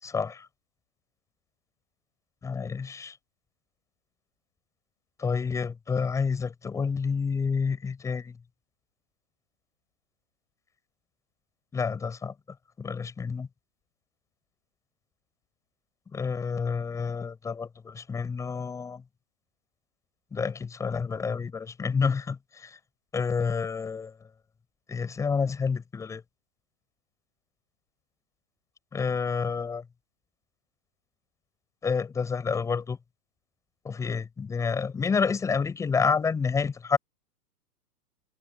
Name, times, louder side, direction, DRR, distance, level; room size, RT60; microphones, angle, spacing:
voice 1, 0.0-0.5 2.4-3.2 5.2-8.3 11.7-12.3 12.8-13.5 16.1-19.0 20.3-22.8 23.1-24.1 24.9-26.2 28.9-29.8 31.8-33.0 33.8-37.0, left 5 dB, 5° left, 7.5 m, -29 dB
hypercardioid pair, 180°, 48 cm